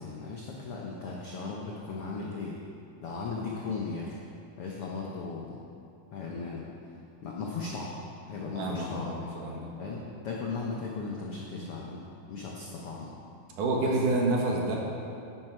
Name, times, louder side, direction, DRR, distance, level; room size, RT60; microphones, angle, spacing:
voice 1, 0.0-2.6 3.0-4.1 4.6-5.6 6.1-6.7 7.2-8.0 8.3-9.1 9.8-12.0 12.3-13.1 13.8-13.9, left 4 dB, 85° left, -3 dB, 1.2 m, -37 dB
voice 2, 8.5-9.7 13.6-14.8, right 2 dB, 65° right, -2 dB, 2.8 m, -28 dB
11.5 x 10.5 x 4.6 m, 2.5 s
omnidirectional pair, 4.1 m